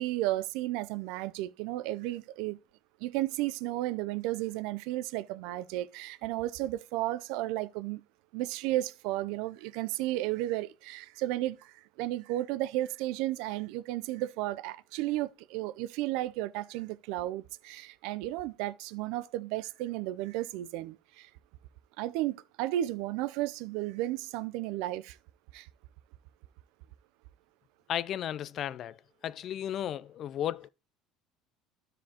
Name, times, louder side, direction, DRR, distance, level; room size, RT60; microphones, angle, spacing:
voice 1, 0.0-2.6 3.0-8.0 8.3-21.3 22.0-25.2 25.5-25.7, right 15 dB, 80° right, 0.4 m, -33 dB
voice 2, 27.9-29.0 29.2-30.7, left 11 dB, 50° left, 0.3 m, -34 dB
12.5 x 4.9 x 2.9 m
supercardioid pair, 105°, 0 cm